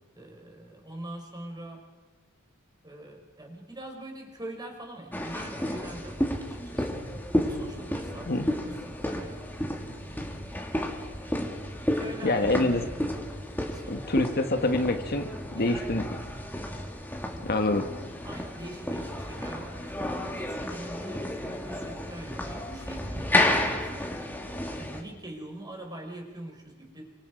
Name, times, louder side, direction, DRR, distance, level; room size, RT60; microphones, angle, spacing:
voice 1, 0.1-1.9 2.8-7.0 7.4-9.4 10.0-10.5 11.9-13.1 13.6-14.1 15.5-15.9 18.2-24.1 24.7-27.1, right 1 dB, 20° right, 2 dB, 4.7 m, -43 dB
sound 1, 5.1-25.0, left 1 dB, 10° left, 2.7 m, -32 dB
voice 2, 12.2-12.9 13.9-16.0 17.4-17.9, left 2 dB, 45° left, 6 dB, 1.5 m, -26 dB
29.5 x 25.5 x 5.2 m, 1.3 s
head